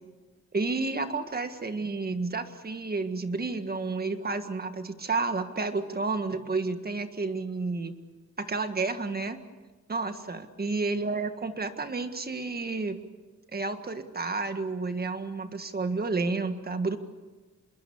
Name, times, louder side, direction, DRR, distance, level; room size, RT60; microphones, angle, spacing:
voice 1, 0.5-8.0 8.4-9.4 9.9-13.0 13.5-17.0, right 3 dB, 30° right, 8 dB, 1.7 m, -31 dB
27.5 x 22.0 x 7.2 m, 1.2 s
wide cardioid pair, 135°, 29 cm